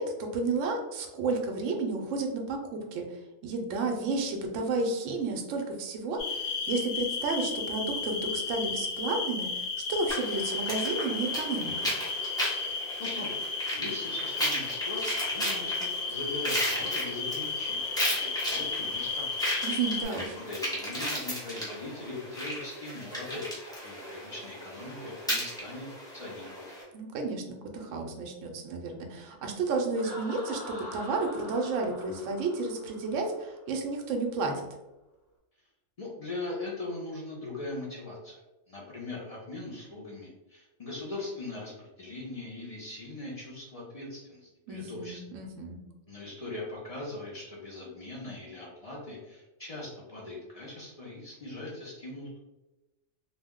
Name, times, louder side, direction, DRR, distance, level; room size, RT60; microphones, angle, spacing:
voice 1, 0.0-11.7 19.6-20.4 26.9-34.7 44.7-45.8, right 3 dB, 75° right, 3 dB, 0.9 m, -32 dB
sound 1, 6.2-20.0, left 4 dB, 80° left, 1.0 m, -33 dB
sound 2, 10.1-26.8, equal, 5° left, 0.7 m, -35 dB
voice 2, 13.0-19.7 20.4-23.4 23.8-26.6 36.0-38.4 38.7-45.2 46.1-52.4, left 2 dB, 50° left, -5 dB, 0.4 m, -40 dB
Laughter, 29.9-33.6, left 1 dB, 45° right, 0.7 m, -44 dB
2.4 x 2.1 x 3.5 m, 1.0 s
omnidirectional pair, 1.3 m